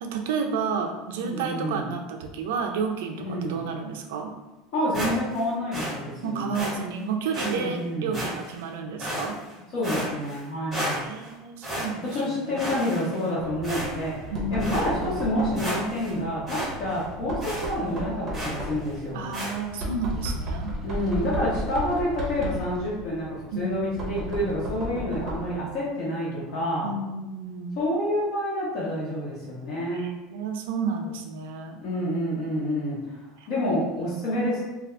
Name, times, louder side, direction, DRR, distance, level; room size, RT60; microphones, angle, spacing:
voice 1, 0.0-4.3 6.2-9.4 10.9-12.6 14.3-15.2 19.1-20.7 23.5-24.5 26.8-27.8 29.9-31.8 33.4-33.5, right 4 dB, 85° right, 4 dB, 0.4 m, -31 dB
voice 2, 1.2-1.8 3.2-3.6 4.7-6.5 7.4-8.2 9.7-11.0 12.0-19.3 20.8-26.9 27.8-30.1 31.8-33.0 33.5-34.6, equal, 45° left, -7 dB, 0.9 m, -28 dB
sound 1, 4.9-5.4 5.7-5.9 6.5-6.7 7.3-7.5 8.1-8.6 9.0-9.5 9.8-10.4 10.7-11.3 11.6-12.2 12.6-13.3 13.6-14.1 14.6-14.9 15.3-15.4 15.5-16.1 16.5-16.7 17.0-17.1 17.4-17.7 18.3-18.6 19.3-19.5, equal, 5° right, 1.1 m, -32 dB
Knock, 13.4-25.6, equal, 25° right, 0.7 m, -35 dB
2.6 x 2.3 x 3.2 m, 1.1 s
cardioid pair, 170°, 0 cm